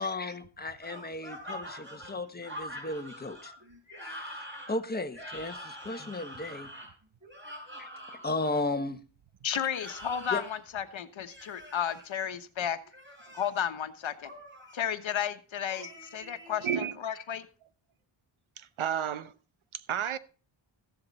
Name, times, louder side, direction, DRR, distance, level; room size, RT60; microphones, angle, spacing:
voice 1, 0.0-3.5 4.0-6.7 7.8-9.0 10.3-10.5, left 2 dB, 20° left, 1.3 m, -35 dB
sound 1, 0.8-8.6 9.7-10.6 11.3-12.1 12.9-13.6 14.2-14.8 15.7-16.8, equal, 25° right, 6.1 m, -45 dB
voice 2, 9.4-12.8 13.3-14.3 14.7-17.5, left 8 dB, 70° left, 1.2 m, -33 dB
voice 3, 16.6-16.9 18.6-19.3 19.7-20.2, right 9 dB, 75° right, 0.9 m, -31 dB
15.0 x 10.5 x 4.1 m
wide cardioid pair, 110°, 49 cm